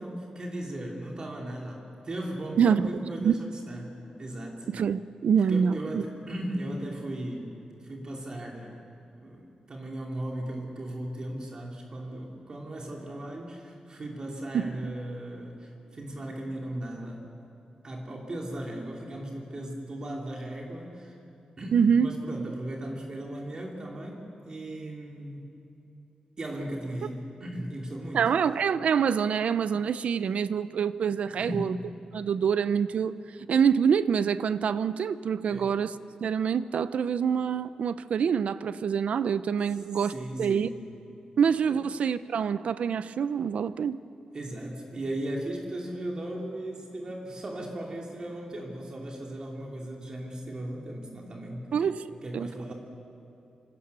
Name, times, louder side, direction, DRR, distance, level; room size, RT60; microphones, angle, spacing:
voice 1, 0.0-4.7 5.5-7.6 7.8-8.8 9.2-17.2 17.8-21.2 21.6-25.5 26.4-28.3 31.4-31.8 35.5-35.7 40.0-40.8 41.7-41.8 44.3-51.9 52.2-52.7, right 1 dB, 35° right, 0 dB, 3.0 m, -37 dB
voice 2, 2.6-2.9 3.2-3.3 4.7-6.0 14.5-14.9 21.7-22.1 28.1-31.8 32.1-33.1 33.5-35.9 36.2-40.1 40.4-40.7 41.4-44.0 51.7-52.7, right 7 dB, 70° right, 14 dB, 0.7 m, -26 dB
26.5 x 26.0 x 6.9 m, 2.9 s
wide cardioid pair, 150°, 2 cm